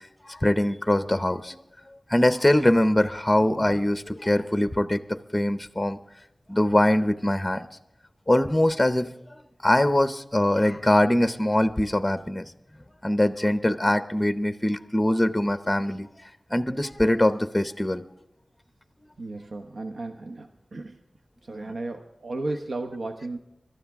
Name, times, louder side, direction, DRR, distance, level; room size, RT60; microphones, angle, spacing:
voice 1, 0.3-1.6 2.1-6.0 6.5-7.7 8.3-9.1 9.6-12.4 13.0-16.1 16.5-18.0, left 1 dB, 15° left, 11 dB, 0.7 m, -22 dB
voice 2, 19.2-21.0 21.4-23.4, right 2 dB, 90° right, 5 dB, 0.9 m, -34 dB
24.5 x 12.5 x 3.6 m, 0.85 s
wide cardioid pair, 85°, 0 cm